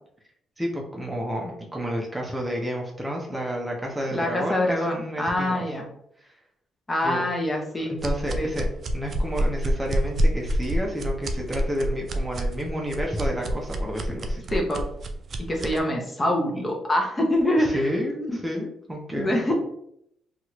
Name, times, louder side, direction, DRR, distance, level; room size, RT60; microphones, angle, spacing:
voice 1, 0.6-5.7 6.2-6.3 7.0-7.2 7.8-8.7 8.9-14.4 17.6-19.5, equal, 10° right, -2 dB, 0.7 m, -30 dB
voice 2, 4.1-5.9 6.9-7.9 8.4-8.5 14.5-14.8 15.5-17.9 18.3-18.4 19.2-19.5, left 1 dB, 25° left, 1 dB, 0.8 m, -25 dB
sound 1, 8.0-15.8, equal, 50° right, 0.4 m, -27 dB
2.9 x 2.4 x 2.9 m, 0.74 s
cardioid pair, 90°, 0 cm